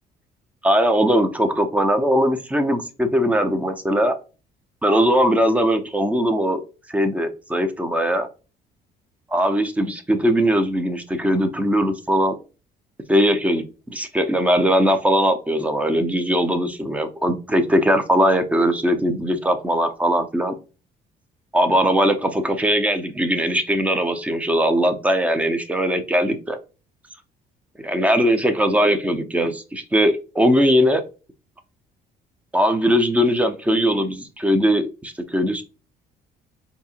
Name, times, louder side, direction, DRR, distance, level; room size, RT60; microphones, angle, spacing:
voice 1, 0.6-4.1 4.8-6.6 6.9-8.3 9.3-12.4 13.1-20.5 21.5-26.6 27.8-31.0 32.5-35.6, equal, 10° right, 8 dB, 0.6 m, -20 dB
4.1 x 2.8 x 2.4 m, 0.32 s
cardioid pair, 110°, 17 cm